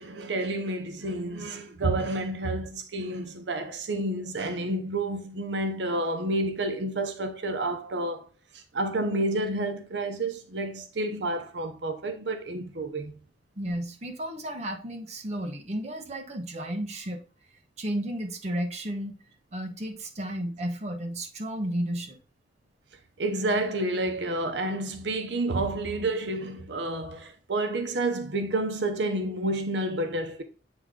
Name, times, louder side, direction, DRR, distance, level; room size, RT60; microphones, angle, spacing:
voice 1, 0.0-8.3 8.5-13.1 23.2-30.4, right 2 dB, 85° right, 0.8 m, -29 dB
voice 2, 13.6-17.2 17.8-19.1 19.5-22.2, right 1 dB, 40° right, 1.1 m, -33 dB
8.0 x 3.5 x 3.7 m
head